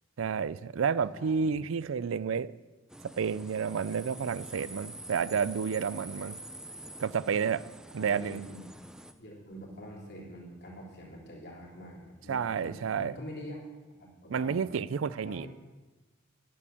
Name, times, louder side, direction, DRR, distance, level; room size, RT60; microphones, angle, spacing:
voice 1, 0.2-2.5 3.2-6.4 7.0-7.6 7.9-8.4 12.3-13.1 14.3-15.5, right 6 dB, 85° right, 18 dB, 0.4 m, -30 dB
voice 2, 1.1-1.5 8.0-8.6 9.2-13.6 13.9-14.6 15.2-15.5, equal, 55° left, -3 dB, 3.5 m, -45 dB
sound 1, 2.9-9.1, right 1 dB, 5° right, 0.6 m, -46 dB
9.9 x 9.3 x 7.0 m, 1.2 s
head